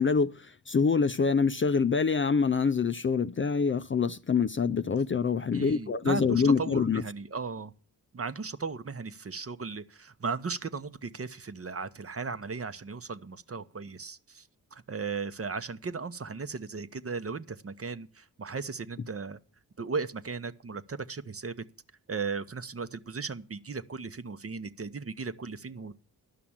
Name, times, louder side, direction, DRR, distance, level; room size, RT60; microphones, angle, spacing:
voice 1, 0.0-7.0, left 5 dB, 30° left, 0.5 m, -25 dB
voice 2, 5.5-7.7 8.1-19.4 19.8-21.6 22.1-25.9, right 4 dB, 35° right, 0.9 m, -36 dB
11.0 x 5.9 x 8.7 m
supercardioid pair, 45°, 40 cm